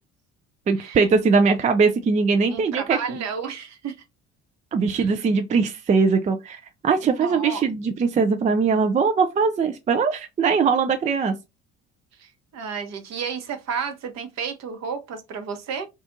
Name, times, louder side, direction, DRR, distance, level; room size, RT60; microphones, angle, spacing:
voice 1, 0.7-3.2 4.7-11.3, right 5 dB, 20° right, 0.4 m, -21 dB
voice 2, 2.5-4.0 4.9-5.1 7.0-7.7 12.2-15.9, right 6 dB, 50° right, 0.9 m, -32 dB
2.5 x 2.4 x 3.7 m
figure-of-eight pair, 55°, 35 cm